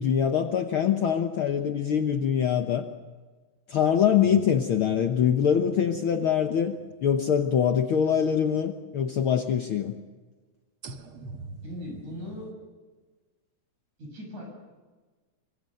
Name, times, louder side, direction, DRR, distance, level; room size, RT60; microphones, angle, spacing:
voice 1, 0.0-2.9 3.7-10.0, left 8 dB, 60° left, 6 dB, 1.4 m, -24 dB
sound 1, 4.2-8.2 8.6-8.7 10.8-12.5, right 3 dB, 55° right, 2.0 m, -46 dB
voice 2, 11.6-12.5 14.0-14.5, left 1 dB, 70° right, 1 dB, 8.8 m, -39 dB
25.0 x 24.5 x 6.5 m, 1.3 s
omnidirectional pair, 3.4 m